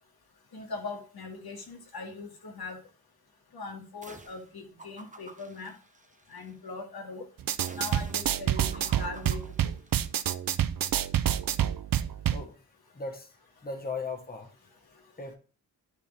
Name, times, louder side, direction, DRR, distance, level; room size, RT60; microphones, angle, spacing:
voice 1, 0.5-2.8 3.5-5.7 6.3-7.2 7.8-9.7, left 3 dB, 85° left, 2 dB, 2.1 m, -40 dB
grapple gun, 4.0-4.5 4.8-6.5 7.6-10.2, right 2 dB, 20° right, 0.9 m, -50 dB
sound 1, 7.4-12.4, right 10 dB, 65° right, 0.5 m, -28 dB
voice 2, 12.3-12.6 12.9-13.3 13.6-14.5 15.2-15.3, left 3 dB, 25° left, 5 dB, 1.3 m, -37 dB
11.5 x 4.6 x 3.4 m, 0.36 s
wide cardioid pair, 140°, 37 cm